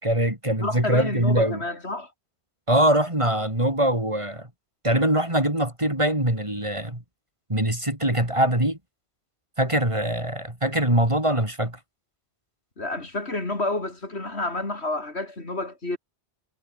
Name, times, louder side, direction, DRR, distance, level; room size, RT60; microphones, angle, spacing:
voice 1, 0.0-1.6 2.7-4.5 4.8-7.0 7.5-8.8 9.6-11.8, right 1 dB, 25° right, 4.4 m, -23 dB
voice 2, 0.6-2.1 12.8-16.0, left 2 dB, 70° left, 4.5 m, -29 dB
omnidirectional pair, 1.1 m